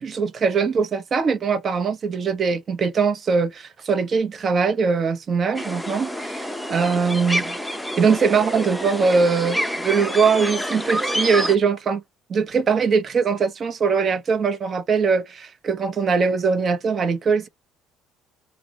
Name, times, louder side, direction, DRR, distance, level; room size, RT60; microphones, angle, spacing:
voice 1, 0.0-7.6 8.0-12.0 12.3-17.5, right 5 dB, 45° right, 0.6 m, -21 dB
sound 1, 5.5-11.5, equal, ahead, 0.6 m, -28 dB
2.3 x 2.0 x 2.8 m
hypercardioid pair, 60°, 0 cm